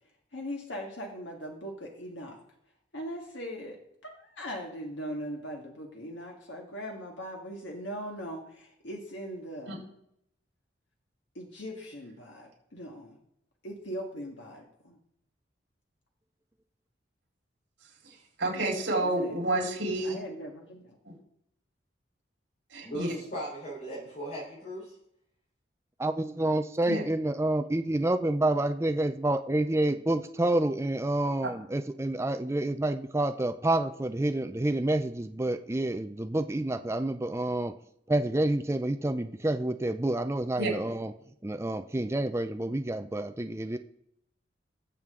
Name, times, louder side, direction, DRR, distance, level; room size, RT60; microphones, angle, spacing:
voice 1, 0.3-2.4 2.9-3.8 4.0-9.9 11.4-13.2 13.6-15.0 19.0-19.3 20.0-21.0, equal, 85° left, 0 dB, 1.8 m, -40 dB
voice 2, 18.0-20.2 21.0-21.2 22.7-23.1 26.9-27.0 40.6-40.7, right 2 dB, 70° right, -1 dB, 4.4 m, -30 dB
voice 3, 22.8-25.0, equal, 45° left, -8 dB, 4.0 m, -38 dB
voice 4, 26.0-37.7 38.1-41.1 41.4-43.8, right 1 dB, 15° right, 8 dB, 0.5 m, -28 dB
20.0 x 7.5 x 3.7 m, 0.77 s
head